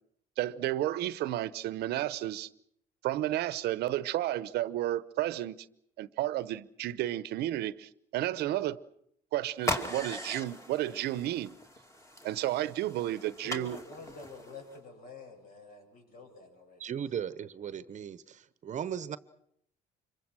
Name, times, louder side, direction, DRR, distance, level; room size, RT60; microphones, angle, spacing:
voice 1, 0.4-2.5 3.0-5.7 6.0-8.8 9.3-11.6 12.2-13.8, right 14 dB, 75° right, 0.9 m, -32 dB
sound 1, 9.6-14.8, left 1 dB, 15° left, 2.6 m, -39 dB
voice 2, 13.4-16.8, left 3 dB, 60° left, 7.9 m, -48 dB
voice 3, 16.8-19.2, right 8 dB, 45° right, 0.9 m, -37 dB
26.5 x 23.0 x 6.3 m
cardioid pair, 110°, 17 cm